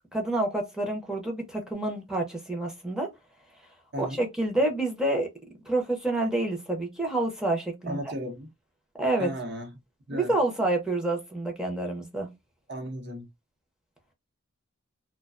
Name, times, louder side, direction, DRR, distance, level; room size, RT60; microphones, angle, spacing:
voice 1, 0.1-3.1 4.0-5.3 5.7-8.0 9.0-9.3 10.1-12.3, right 2 dB, 5° right, 0.6 m, -28 dB
voice 2, 7.9-8.5 9.2-9.7 10.1-10.3 12.7-13.3, equal, 55° right, 0.8 m, -35 dB
2.4 x 2.2 x 2.4 m
head